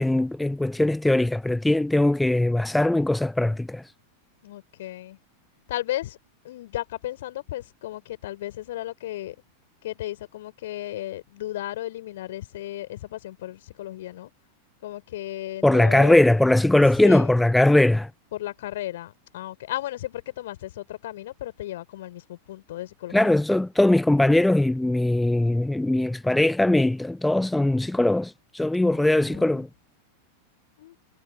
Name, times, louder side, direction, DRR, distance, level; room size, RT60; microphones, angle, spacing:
voice 1, 0.0-3.8 15.6-18.1 23.1-29.7, left 1 dB, 5° left, 0.5 m, -20 dB
voice 2, 4.4-5.2 5.7-6.2 6.4-9.3 9.8-14.3 14.8-16.2 17.0-17.3 18.3-23.4 28.8-29.6 30.8-31.0, left 14 dB, 55° left, 4.6 m, -35 dB
figure-of-eight pair, 90°, 0 cm